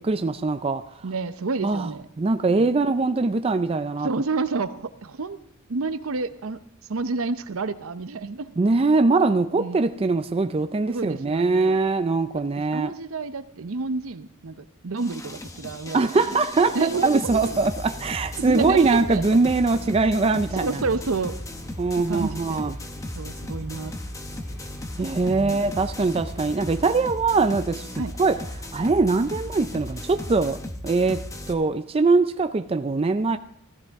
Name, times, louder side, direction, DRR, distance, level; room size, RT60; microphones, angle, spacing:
voice 1, 0.0-1.1 1.6-1.9 2.2-4.1 8.6-12.9 15.9-20.8 21.8-22.7 25.0-27.9 28.2-33.4, right 3 dB, 25° right, 0.4 m, -22 dB
voice 2, 1.0-2.1 2.5-2.7 4.0-5.4 5.7-6.6 6.9-8.5 9.6-9.8 10.9-11.8 12.7-16.4 16.7-17.6 18.4-19.2 20.5-21.4 22.1-22.7 23.1-23.9 25.3-25.6 27.9-28.1, right 4 dB, 70° right, 0.7 m, -29 dB
sound 1, 15.0-31.5, left 1 dB, 15° left, 0.9 m, -36 dB
Engine, 16.6-30.4, right 2 dB, 10° right, 1.8 m, -50 dB
sound 2, 18.2-26.8, left 1 dB, 55° left, 3.6 m, -46 dB
15.0 x 14.5 x 3.5 m
head